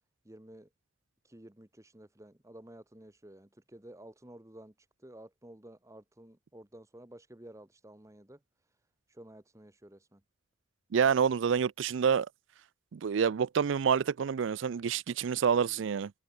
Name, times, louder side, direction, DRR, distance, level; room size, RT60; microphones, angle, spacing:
voice 1, 0.2-0.7 1.2-8.4 9.1-10.2, right 1 dB, 15° right, 1.3 m, -52 dB
voice 2, 10.9-12.3 12.9-16.1, right 7 dB, 75° right, 0.4 m, -27 dB
head